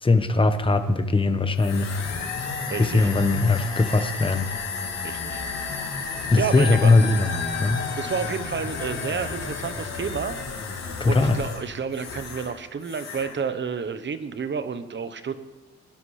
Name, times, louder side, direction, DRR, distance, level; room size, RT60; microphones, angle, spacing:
voice 1, 0.0-2.0 2.8-4.5 6.3-7.3 7.6-7.9 11.0-11.4, left 3 dB, 15° left, 9 dB, 1.1 m, -20 dB
sound 1, 1.6-12.6 12.8-13.4, left 5 dB, 60° left, 2.9 m, -32 dB
voice 2, 2.7-3.1 5.0-6.9 7.9-15.3, right 6 dB, 40° right, 11 dB, 1.0 m, -31 dB
20.5 x 11.5 x 3.3 m, 1.2 s
cardioid pair, 90°, 30 cm